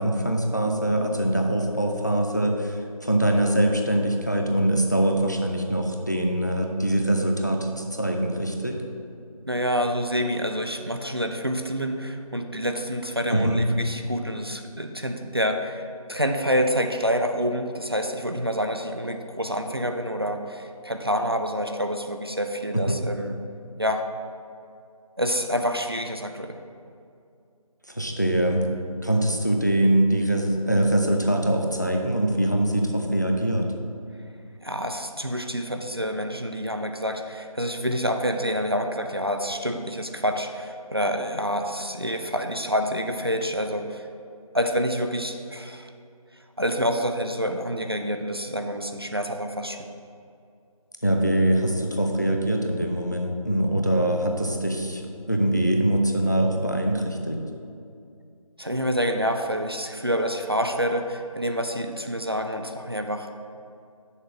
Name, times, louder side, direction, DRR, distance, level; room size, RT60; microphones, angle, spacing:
voice 1, 0.0-8.8 13.3-13.6 22.7-23.0 27.9-28.7 29.0-33.7 51.0-55.0 55.3-57.4, right 1 dB, 30° left, 2 dB, 0.5 m, -23 dB
voice 2, 9.5-23.4 23.8-24.0 25.2-26.6 34.6-44.1 44.5-45.9 46.6-49.9 58.6-63.3, equal, 40° right, 5 dB, 0.4 m, -27 dB
6.5 x 4.5 x 6.0 m, 2.4 s
figure-of-eight pair, 170°, 19 cm